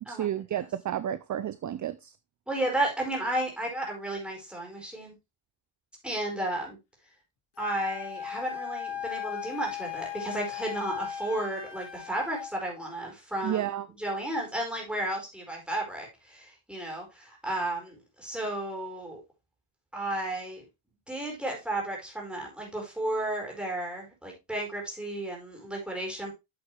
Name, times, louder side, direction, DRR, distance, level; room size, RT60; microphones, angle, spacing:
voice 1, 0.1-2.2 13.4-13.9, right 11 dB, 40° right, 0.4 m, -31 dB
voice 2, 2.5-5.1 6.0-6.8 7.6-19.2 19.9-20.6 21.1-26.3, right 1 dB, ahead, 4.7 m, -33 dB
Wind instrument woodwind instrument, 7.6-12.5, left 10 dB, 55° left, 2.0 m, -38 dB
8.3 x 7.8 x 3.2 m
cardioid pair, 145°, 50 cm